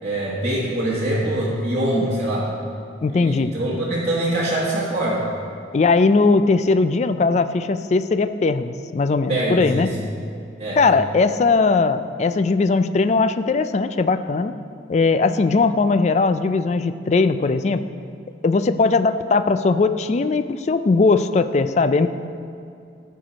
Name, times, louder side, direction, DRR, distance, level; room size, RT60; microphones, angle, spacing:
voice 1, 0.0-2.5 3.1-5.3 9.3-9.9 10.6-10.8, right 1 dB, 35° right, -8 dB, 1.3 m, -23 dB
voice 2, 3.0-3.5 5.7-9.9 10.8-14.6 14.9-17.8 18.4-22.1, left 3 dB, 35° left, 11 dB, 0.3 m, -19 dB
13.5 x 4.6 x 5.1 m, 2.5 s
head